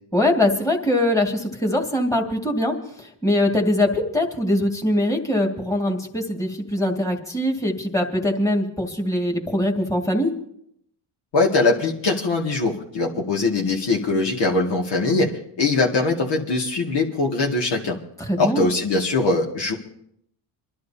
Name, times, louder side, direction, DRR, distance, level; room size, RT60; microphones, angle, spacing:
voice 1, 0.1-10.3 18.2-18.7, left 1 dB, 5° left, 1 dB, 2.2 m, -22 dB
voice 2, 11.3-18.0 18.4-19.7, left 3 dB, 60° left, 0 dB, 2.3 m, -22 dB
27.0 x 11.5 x 2.8 m, 0.74 s
supercardioid pair, 75°, 48 cm